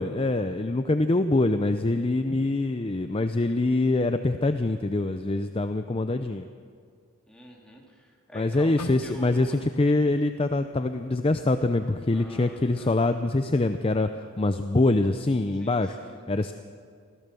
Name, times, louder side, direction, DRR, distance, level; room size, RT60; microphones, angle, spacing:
voice 1, 0.0-6.5 8.3-14.1 14.4-16.0 16.3-16.5, left 2 dB, 25° left, 9 dB, 0.5 m, -24 dB
voice 2, 7.3-9.6 12.1-13.0 15.5-16.2, equal, 5° left, -2 dB, 3.0 m, -45 dB
sound 1, 8.8-12.8 13.2-13.4 14.1-14.4, left 2 dB, 90° left, 1.1 m, -45 dB
25.0 x 16.0 x 6.9 m, 2.2 s
head